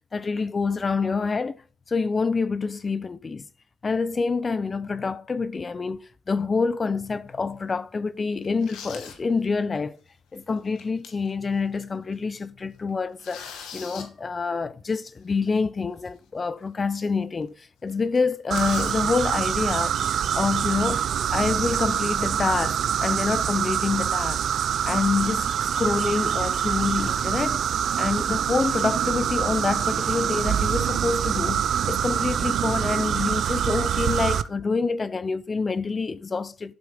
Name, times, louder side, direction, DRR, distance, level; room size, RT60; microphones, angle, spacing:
voice 1, 0.1-1.6 1.9-3.5 3.8-10.0 10.3-13.4 13.7-19.9 20.3-21.1 21.3-24.4 24.8-27.6 28.0-36.7, left 4 dB, 30° left, 0.9 m, -27 dB
sound 1, 7.1-7.3 7.8-7.9 8.4-9.2 9.7-9.8 10.6-11.3 11.7-11.8 12.1-12.4 12.7-14.1 16.1-16.2 16.6-16.7 17.0-17.1 17.4-17.6 17.9-19.0 20.1-20.3 20.9-21.5, left 7 dB, 85° left, 2.6 m, -42 dB
sound 2, 18.5-34.4, right 9 dB, 65° right, 0.8 m, -25 dB
12.0 x 8.6 x 5.1 m
cardioid pair, 90°, 0 cm